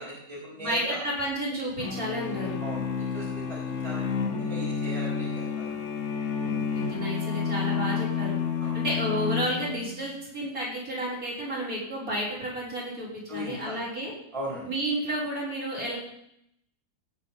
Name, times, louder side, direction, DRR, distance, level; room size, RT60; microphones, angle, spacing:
voice 1, 0.0-1.0 2.6-5.8 8.6-8.8 13.3-13.8 14.3-14.7, equal, 20° right, -3 dB, 3.9 m, -38 dB
voice 2, 0.6-2.6 6.4-8.4 8.7-14.1 14.6-16.0, right 1 dB, 50° right, -6 dB, 5.9 m, -31 dB
sound 1, 1.8-10.1, left 6 dB, 45° left, 1.6 m, -30 dB
16.5 x 8.5 x 5.9 m, 0.76 s
omnidirectional pair, 1.9 m